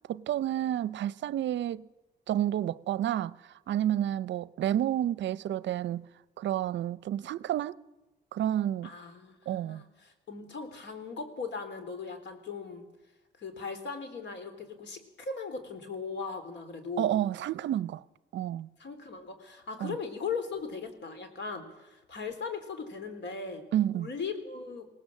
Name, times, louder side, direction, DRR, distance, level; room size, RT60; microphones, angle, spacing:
voice 1, 0.1-1.9 2.3-6.1 6.4-7.8 8.3-8.9 9.5-9.8 17.0-18.0 18.3-18.7 19.8-20.0 23.7-24.1, right 11 dB, 65° right, 0.6 m, -30 dB
voice 2, 8.8-12.8 13.4-17.1 18.8-23.6 23.9-24.8, left 5 dB, 65° left, 3.7 m, -38 dB
21.0 x 18.0 x 7.4 m
cardioid pair, 90°, 20 cm